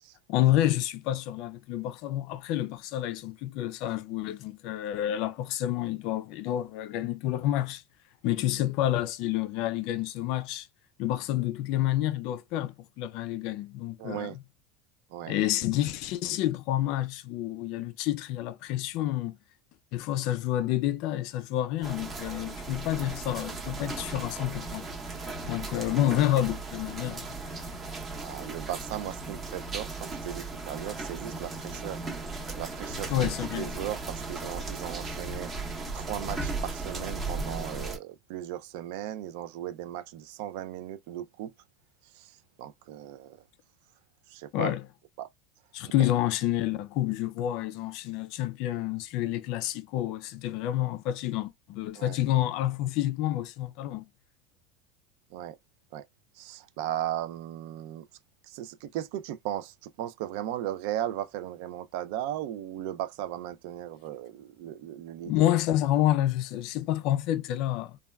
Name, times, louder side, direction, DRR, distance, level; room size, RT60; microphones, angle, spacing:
voice 1, 0.3-7.8 8.2-10.7 11.0-14.3 15.3-19.4 19.9-24.9 25.5-27.4 33.1-33.7 44.5-44.8 45.7-54.0 65.2-68.0, left 13 dB, 50° left, 0.3 m, -29 dB
voice 2, 14.0-14.4 15.1-15.4 28.2-32.0 32.6-33.3 33.6-35.5 35.9-41.5 42.0-43.4 44.3-44.7 45.2-45.3 45.8-46.1 52.0-52.2 55.3-55.6 55.9-56.1 56.3-58.1 58.4-65.5, right 12 dB, 60° right, 0.3 m, -37 dB
sound 1, 21.8-38.0, right 3 dB, 20° right, 0.7 m, -36 dB
3.3 x 2.2 x 2.2 m
supercardioid pair, 165°, 0 cm